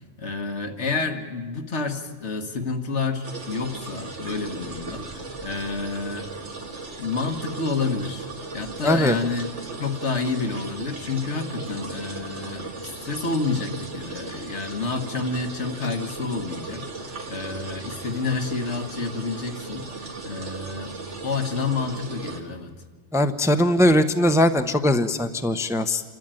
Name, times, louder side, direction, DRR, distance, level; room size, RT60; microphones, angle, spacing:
voice 1, 0.2-6.3 7.0-9.5 9.8-21.0 21.2-22.7, left 4 dB, 80° left, 5 dB, 1.9 m, -29 dB
sound 1, 3.2-22.4, right 3 dB, 85° right, 2.4 m, -37 dB
voice 2, 8.8-9.2 23.1-26.0, left 1 dB, 5° right, 8 dB, 0.7 m, -20 dB
28.0 x 13.0 x 9.0 m, 1.5 s
omnidirectional pair, 1.2 m